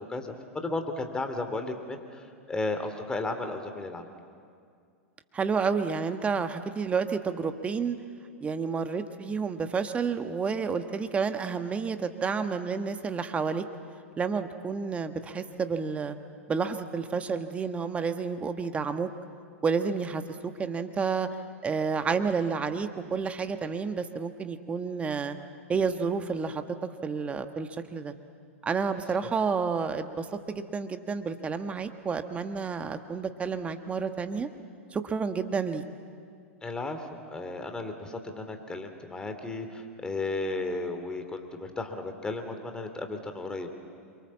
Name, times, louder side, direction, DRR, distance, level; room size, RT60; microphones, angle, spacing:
voice 1, 0.1-4.0 36.6-37.0 37.3-43.7, left 2 dB, 10° left, 6 dB, 2.7 m, -34 dB
voice 2, 5.3-8.0 8.4-13.6 14.2-16.2 16.5-19.1 19.6-21.3 21.6-25.4 25.7-26.6 27.0-28.1 28.6-34.5 34.9-35.8, right 5 dB, 15° right, 8 dB, 1.5 m, -30 dB
28.0 x 24.0 x 7.5 m, 2.3 s
figure-of-eight pair, 95°, 7 cm